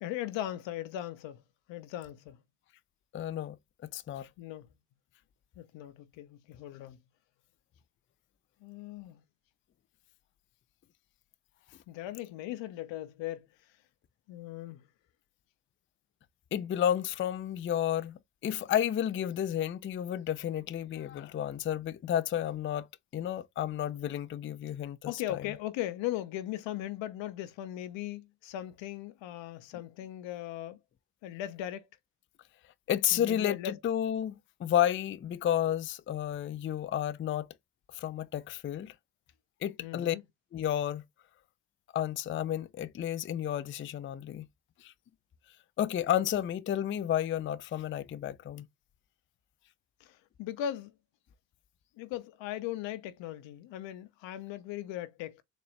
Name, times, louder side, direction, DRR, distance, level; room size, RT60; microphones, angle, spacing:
voice 1, 0.0-1.4 1.7-2.4 4.4-4.7 5.6-7.0 8.6-9.2 11.9-13.5 14.3-14.8 25.1-30.8 31.2-31.9 33.1-33.8 39.8-40.2 50.0-50.9 52.0-55.4, left 12 dB, 80° left, 0.7 m, -38 dB
voice 2, 3.1-3.6 3.9-4.3 16.5-22.9 23.1-25.4 32.9-34.3 34.6-37.5 37.9-38.9 39.6-40.2 40.5-41.0 41.9-44.5 44.8-44.9 45.8-48.7, left 10 dB, 30° left, 0.4 m, -31 dB
4.0 x 2.2 x 3.1 m
hypercardioid pair, 45°, 45 cm